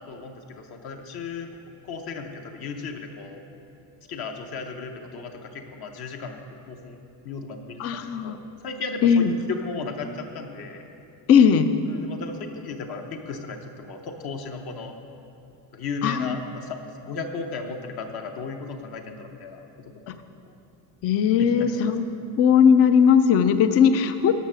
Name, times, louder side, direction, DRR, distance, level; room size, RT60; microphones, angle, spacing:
voice 1, 0.1-1.5 1.8-3.4 4.1-6.4 6.7-7.0 7.2-10.8 11.9-14.9 15.7-19.6 20.1-20.2 21.4-21.8, left 4 dB, 50° left, 4 dB, 0.9 m, -35 dB
voice 2, 7.8-8.4 9.0-9.4 11.3-11.7 16.0-16.3 21.0-22.0 22.4-24.3, left 7 dB, 35° left, 10 dB, 0.4 m, -18 dB
11.0 x 6.6 x 6.2 m, 2.8 s
cardioid pair, 155°, 49 cm